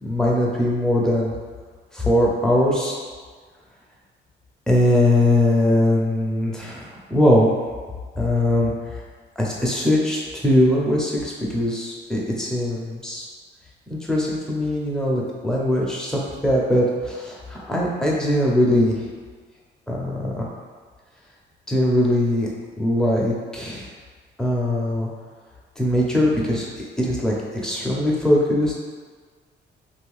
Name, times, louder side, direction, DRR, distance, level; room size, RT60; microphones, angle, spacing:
voice 1, 0.0-1.3 1.9-3.0 4.7-7.5 8.2-8.7 9.4-13.3 13.9-19.0 19.9-20.5 21.7-22.5 22.8-23.9 24.4-25.1 25.8-26.7 27.0-27.3 27.6-28.7, left 1 dB, 5° left, -4 dB, 0.8 m, -21 dB
2.7 x 2.6 x 3.5 m, 1.6 s
cardioid pair, 90°, 20 cm